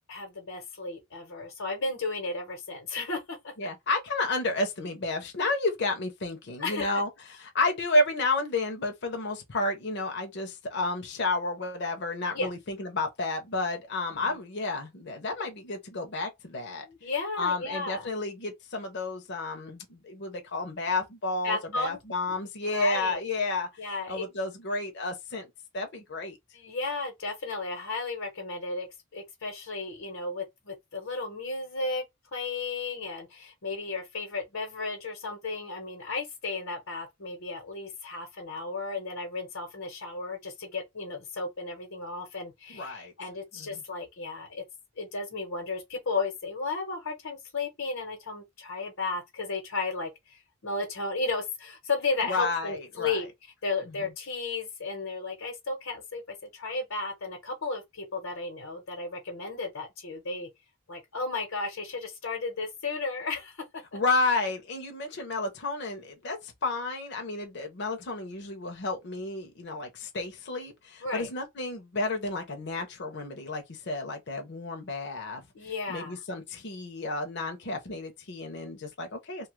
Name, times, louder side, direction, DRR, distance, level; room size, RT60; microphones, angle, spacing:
voice 1, 0.1-3.5 6.6-6.9 12.3-12.5 14.1-14.4 16.8-18.1 21.4-22.0 22.6-23.2 23.8-24.3 26.5-28.9 29.1-32.0 32.3-44.6 45.0-53.3 53.6-60.5 60.9-64.0 71.0-71.3 75.5-76.2, left 3 dB, 85° left, 1.1 m, -34 dB
voice 2, 3.6-16.9 17.4-23.7 24.1-25.5 25.7-26.4 42.7-43.1 43.6-43.8 52.2-53.2 63.9-75.4 75.9-79.5, left 2 dB, 60° left, 0.7 m, -31 dB
2.8 x 2.4 x 3.0 m
head